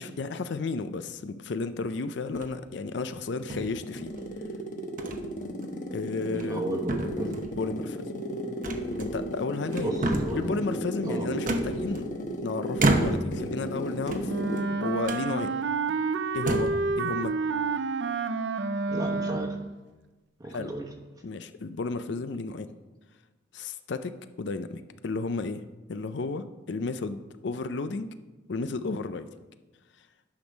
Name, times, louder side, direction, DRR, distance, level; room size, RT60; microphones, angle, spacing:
voice 1, 0.0-4.1 5.9-6.6 7.0-8.1 9.0-10.0 10.3-12.0 12.4-14.3 14.8-15.5 16.3-16.7 17.0-17.4 20.5-20.8 21.2-22.7 23.5-25.6 25.9-28.1 28.5-29.3, left 3 dB, 65° left, 11 dB, 0.5 m, -33 dB
sound 1, 2.3-2.7 3.5-4.2 5.0-5.2 5.6-5.8 6.3-6.6 6.9-7.6 8.6-9.4 9.7-10.5 11.5-12.3 12.8-13.4 14.0-14.7 15.0-15.3 15.9-16.0 16.3-16.9, right 2 dB, 40° right, 0.8 m, -30 dB
sound 2, 3.0-14.8, equal, 40° left, 0.9 m, -34 dB
voice 2, 6.3-7.3 9.7-10.6 11.0-11.3 18.9-19.5 20.4-20.9, right 1 dB, 20° right, 1 dB, 1.1 m, -33 dB
Wind instrument woodwind instrument, 14.2-19.7, right 4 dB, 65° right, 0.5 m, -29 dB
10.0 x 6.2 x 5.1 m, 1.2 s
head